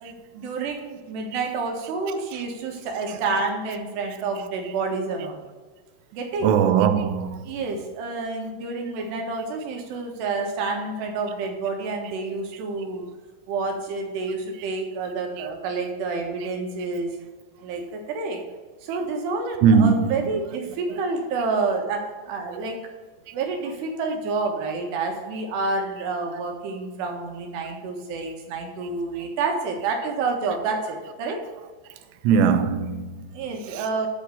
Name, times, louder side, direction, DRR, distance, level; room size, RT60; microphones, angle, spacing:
voice 1, 0.0-5.4 6.1-6.6 7.4-13.1 13.5-17.1 17.6-18.4 18.8-22.8 23.3-31.4 33.3-34.1, right 4 dB, 65° right, 3.3 m, -29 dB
voice 2, 6.4-7.4 19.6-20.2 32.2-33.3 33.7-34.1, right 6 dB, 90° right, 3.3 m, -20 dB
10.5 x 4.4 x 6.8 m
omnidirectional pair, 5.5 m